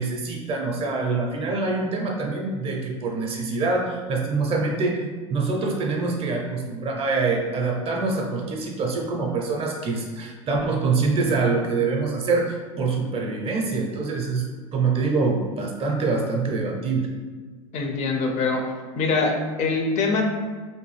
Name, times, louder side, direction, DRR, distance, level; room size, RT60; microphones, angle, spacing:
voice 1, 0.0-5.0 5.3-17.1, right 3 dB, 35° right, 0 dB, 0.5 m, -25 dB
voice 2, 17.7-18.6 19.0-20.2, left 3 dB, 45° left, 3 dB, 0.5 m, -23 dB
2.6 x 2.2 x 3.1 m, 1.5 s
hypercardioid pair, 105°, 17 cm